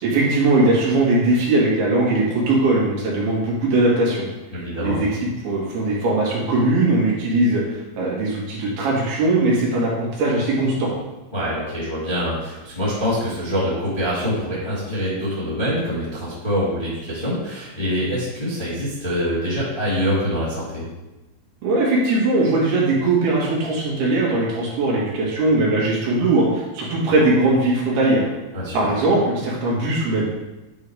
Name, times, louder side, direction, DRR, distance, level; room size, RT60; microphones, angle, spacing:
voice 1, 0.0-4.3 4.8-5.1 5.4-7.6 8.0-10.9 21.6-28.2 28.7-30.3, right 2 dB, 65° right, -5 dB, 3.7 m, -20 dB
voice 2, 4.5-5.0 11.3-20.8 28.5-28.9, equal, 20° left, -9 dB, 1.7 m, -25 dB
10.5 x 3.8 x 4.9 m, 1.0 s
omnidirectional pair, 5.0 m